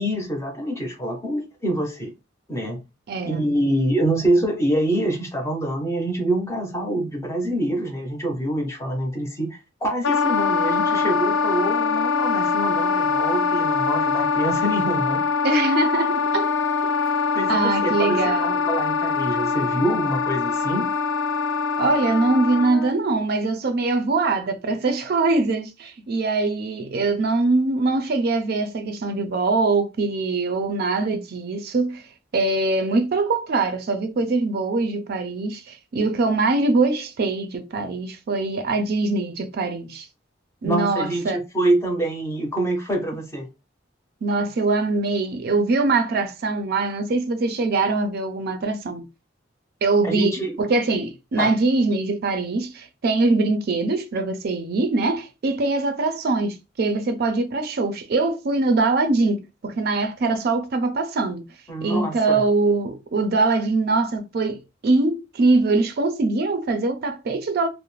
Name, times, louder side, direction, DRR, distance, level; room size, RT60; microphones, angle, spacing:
voice 1, 0.0-2.1 2.5-2.8 3.3-15.2 17.3-20.9 40.6-43.5 50.0-50.6 51.4-51.5 61.7-62.4, right 1 dB, 15° left, 0.6 m, -25 dB
voice 2, 3.1-3.5 15.4-16.5 16.8-16.9 17.5-18.5 21.8-32.0 32.3-40.1 40.6-41.4 44.2-49.0 49.8-61.4 61.8-67.7, right 3 dB, 55° right, 0.4 m, -22 dB
Wind instrument woodwind instrument, 10.0-22.9, left 5 dB, 80° left, 0.4 m, -23 dB
2.4 x 2.0 x 3.1 m
head